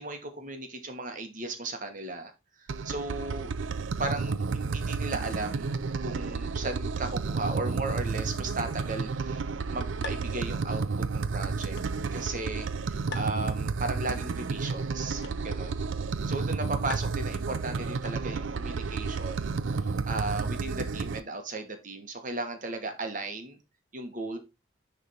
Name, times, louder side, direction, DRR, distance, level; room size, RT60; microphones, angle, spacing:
voice 1, 0.0-2.3 2.6-3.5 4.0-5.7 6.0-10.8 11.1-11.8 12.1-19.5 19.8-23.6 23.9-24.4, right 2 dB, 40° right, 6 dB, 1.3 m, -36 dB
sound 1, 2.7-21.2, right 4 dB, 70° right, 0.5 m, -31 dB
sound 2, 10.0-18.6, left 4 dB, 55° left, 1.1 m, -48 dB
9.8 x 3.4 x 4.1 m, 0.26 s
head